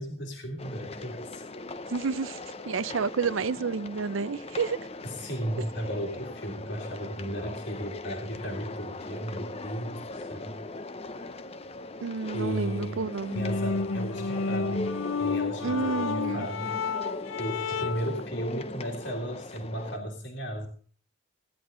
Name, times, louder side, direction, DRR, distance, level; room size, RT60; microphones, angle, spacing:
voice 1, 0.0-1.4 5.0-10.7 12.3-13.0 13.3-14.9 15.2-16.8 17.4-20.7, equal, 65° left, 0 dB, 2.3 m, -35 dB
sound 1, 0.6-20.0, left 2 dB, 30° left, 0.6 m, -40 dB
voice 2, 1.9-2.4 2.7-4.8 12.0-13.5 15.6-16.5, right 5 dB, 85° right, 17 dB, 0.5 m, -30 dB
sound 2, 13.2-18.2, left 4 dB, 90° left, 0.5 m, -31 dB
16.0 x 10.5 x 3.7 m, 0.43 s
head